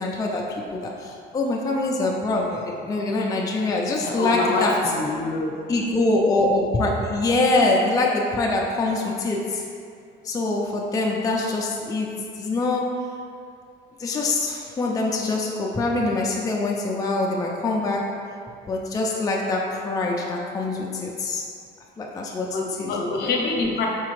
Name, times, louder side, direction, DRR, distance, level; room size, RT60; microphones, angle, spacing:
voice 1, 0.0-5.0 5.7-9.7 10.2-13.2 14.0-18.3 18.7-21.5 22.0-23.3, left 2 dB, 20° left, -2 dB, 0.4 m, -24 dB
voice 2, 4.0-5.5 22.5-23.9, left 3 dB, 65° left, -1 dB, 0.7 m, -26 dB
4.9 x 3.3 x 3.1 m, 2.3 s
cardioid pair, 130°, 18 cm